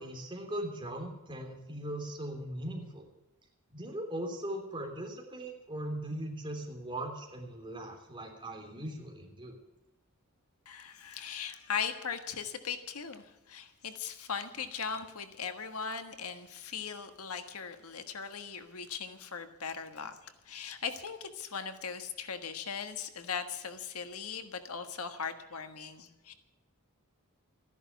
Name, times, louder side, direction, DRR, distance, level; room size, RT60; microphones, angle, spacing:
voice 1, 0.0-3.1 3.7-9.6, right 1 dB, 25° right, 2 dB, 3.2 m, -39 dB
voice 2, 10.6-26.3, left 6 dB, 80° left, 8 dB, 1.5 m, -39 dB
14.0 x 11.0 x 8.3 m, 0.95 s
head